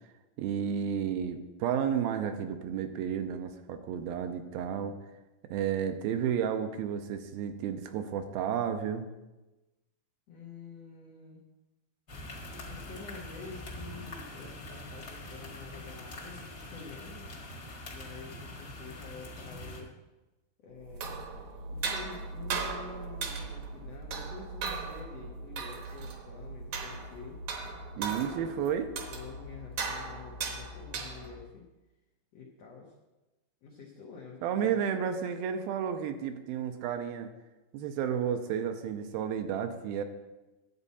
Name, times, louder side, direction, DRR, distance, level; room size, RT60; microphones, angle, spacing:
voice 1, 0.4-5.0 5.5-9.1 28.0-28.9 34.4-37.3 37.7-40.0, right 8 dB, 85° right, 7 dB, 2.4 m, -32 dB
voice 2, 10.3-11.4 12.7-17.3 17.9-19.9 20.6-21.2 21.7-27.4 27.9-28.5 29.1-31.7 32.3-32.9 33.6-34.8, left 5 dB, 85° left, -1 dB, 1.4 m, -48 dB
sound 1, 12.1-19.8, left 1 dB, 50° left, 1.2 m, -44 dB
sound 2, 20.8-31.5, right 4 dB, 65° right, 2.0 m, -38 dB
10.5 x 8.3 x 4.2 m, 1.1 s
omnidirectional pair, 4.4 m